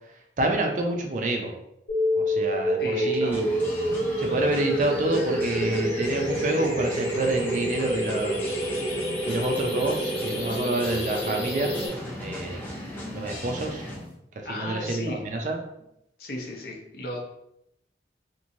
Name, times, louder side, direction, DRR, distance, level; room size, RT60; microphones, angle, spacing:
voice 1, 0.4-1.5 2.1-3.5 4.2-8.4 9.2-11.7 12.2-12.9 13.1-13.8 14.4-15.6, right 2 dB, 45° right, 2 dB, 0.4 m, -28 dB
sound 1, 1.9-11.9, equal, 80° left, 0.9 m, -28 dB
voice 2, 2.8-3.4 14.4-15.2 16.2-17.2, left 1 dB, 55° left, -1 dB, 0.6 m, -35 dB
sound 2, 3.3-14.1, left 1 dB, 10° left, 0.5 m, -37 dB
3.0 x 2.6 x 2.6 m, 0.81 s
head